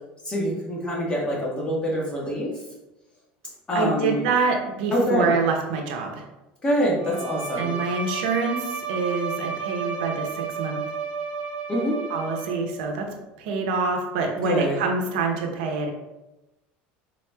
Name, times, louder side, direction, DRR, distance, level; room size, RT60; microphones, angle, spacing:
voice 1, 0.2-2.6 3.7-4.2 4.9-5.3 6.6-7.7 11.7-12.0 14.4-14.8, equal, 20° left, -4 dB, 1.1 m, -25 dB
voice 2, 3.7-6.3 7.6-10.8 12.1-13.1 13.4-15.9, right 4 dB, 90° right, 2 dB, 0.6 m, -26 dB
Bowed string instrument, 7.0-12.8, right 6 dB, 25° right, 0.4 m, -32 dB
4.1 x 2.9 x 2.2 m, 0.99 s
cardioid pair, 140°, 5 cm